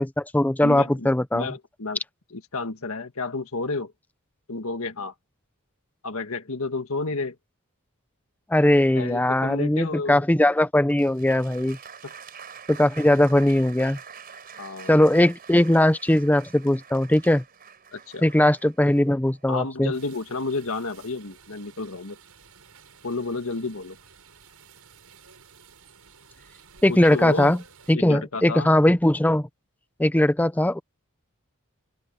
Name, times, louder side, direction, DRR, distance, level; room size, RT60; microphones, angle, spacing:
voice 1, 0.0-1.5 8.5-11.8 12.7-14.0 14.9-17.4 18.2-19.9 26.8-27.6 27.9-29.5 30.0-30.8, left 1 dB, 5° left, 0.5 m, -20 dB
voice 2, 0.6-2.0 2.3-3.9 4.5-5.1 6.0-7.4 9.0-10.2 12.0-12.1 14.6-15.0 17.9-18.2 19.5-22.2 23.0-24.0 26.9-27.6 27.9-28.7, left 3 dB, 70° left, 1.8 m, -31 dB
Applause, 10.9-19.8, right 7 dB, 45° right, 4.8 m, -46 dB
sound 1, 19.9-28.0, right 6 dB, 90° right, 6.0 m, -52 dB
open air
head